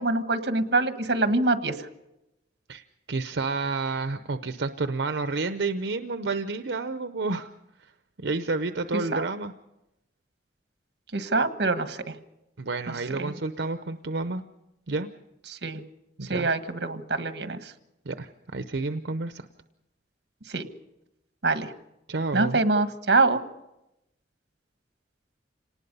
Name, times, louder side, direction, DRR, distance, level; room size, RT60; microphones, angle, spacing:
voice 1, 0.0-1.9 9.1-9.2 11.1-12.2 12.9-13.3 15.5-15.8 16.2-17.7 20.5-20.7 21.4-21.7 22.3-23.4, right 3 dB, 70° right, 9 dB, 1.4 m, -25 dB
voice 2, 2.7-7.5 8.2-9.5 12.6-14.4 14.9-15.1 16.2-16.5 18.0-19.5 22.1-22.6, right 3 dB, 85° right, 9 dB, 0.8 m, -30 dB
26.5 x 19.0 x 5.5 m, 0.89 s
head